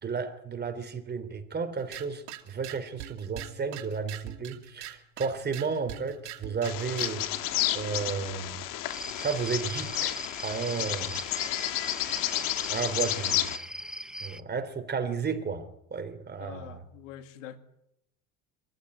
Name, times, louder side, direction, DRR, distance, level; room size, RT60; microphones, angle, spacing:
voice 1, 0.0-7.2 7.7-8.6 9.2-11.2 12.7-13.5 14.2-16.8, right 5 dB, 25° right, 8 dB, 3.4 m, -33 dB
sound 1, 1.8-7.3, right 12 dB, 75° right, 2.6 m, -43 dB
Bird vocalization bird call bird song, 6.6-13.6, left 14 dB, 60° left, 2.0 m, -31 dB
sound 2, 8.9-14.4, right 1 dB, ahead, 0.9 m, -40 dB
voice 2, 16.4-17.6, left 11 dB, 85° left, 10 dB, 2.3 m, -44 dB
25.0 x 14.5 x 9.9 m, 0.83 s
supercardioid pair, 105°, 37 cm